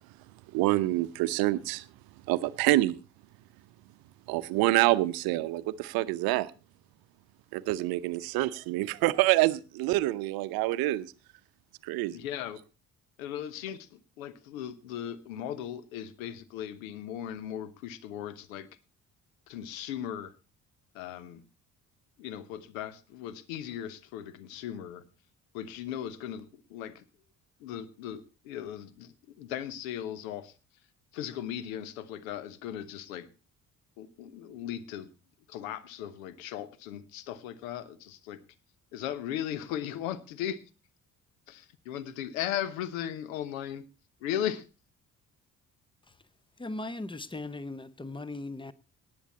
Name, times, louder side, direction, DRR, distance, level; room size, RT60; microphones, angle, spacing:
voice 1, 0.5-1.9 2.3-3.0 4.3-6.5 7.5-11.1 11.8-12.2, right 18 dB, 55° right, 0.8 m, -26 dB
voice 2, 12.1-12.6 13.2-18.7 19.5-20.3 20.9-21.4 22.2-25.0 25.5-27.0 27.6-30.5 31.1-33.3 34.0-35.1 35.5-38.4 38.9-40.6 41.5-43.8 44.2-44.6, left 10 dB, 70° left, 1.1 m, -37 dB
voice 3, 46.6-48.7, left 2 dB, 10° left, 0.9 m, -38 dB
18.5 x 7.9 x 4.1 m
figure-of-eight pair, 45°, 42 cm